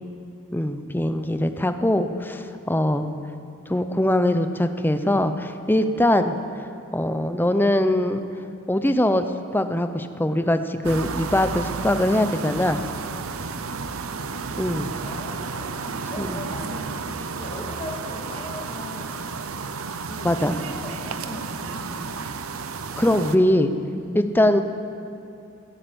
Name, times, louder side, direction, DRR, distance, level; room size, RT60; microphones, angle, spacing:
voice 1, 0.5-3.1 3.7-6.4 6.9-8.2 8.7-9.2 9.5-12.8 14.6-14.9 16.2-16.4 20.2-20.6 23.0-23.7 24.2-24.6, left 1 dB, 10° left, 8 dB, 0.6 m, -22 dB
sound 1, 10.8-23.4, right 4 dB, 80° right, 0.8 m, -32 dB
voice 2, 13.3-13.7 15.0-19.3 20.1-22.2 24.0-24.3, left 1 dB, 25° left, -2 dB, 2.5 m, -39 dB
15.5 x 11.5 x 8.0 m, 2.6 s
head